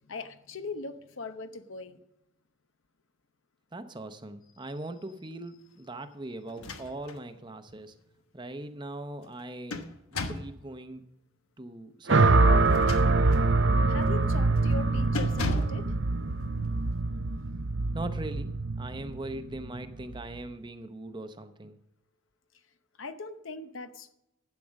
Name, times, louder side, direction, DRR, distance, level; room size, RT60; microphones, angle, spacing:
voice 1, 0.0-2.0 13.9-15.9 23.0-24.1, left 3 dB, 65° left, 10 dB, 0.8 m, -40 dB
voice 2, 3.7-7.9 8.3-9.8 10.1-11.0 11.6-12.6 17.9-21.8, right 2 dB, 20° right, 9 dB, 0.7 m, -40 dB
sound 1, 6.5-7.2 7.7-7.8 9.2-10.6 12.6-13.5 14.0-14.2 14.6-14.8 15.1-15.8, left 2 dB, 85° left, 1.1 m, -36 dB
sound 2, 12.1-20.3, right 3 dB, 55° right, 0.6 m, -24 dB
12.0 x 8.5 x 6.3 m, 0.83 s
head